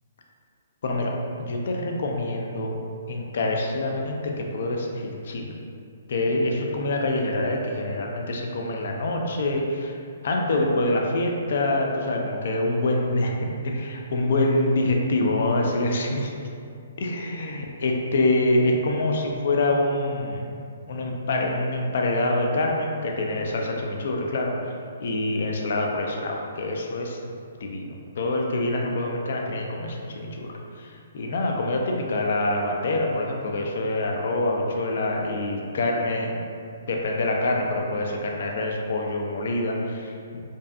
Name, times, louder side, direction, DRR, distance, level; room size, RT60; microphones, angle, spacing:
voice 1, 0.8-2.8 3.1-5.6 6.1-10.0 10.2-16.3 17.0-20.4 20.9-24.5 25.0-27.2 27.6-36.4 36.9-40.4, left 2 dB, 60° left, 1 dB, 0.3 m, -26 dB
2.6 x 2.3 x 2.2 m, 2.4 s
hypercardioid pair, 160°, 0 cm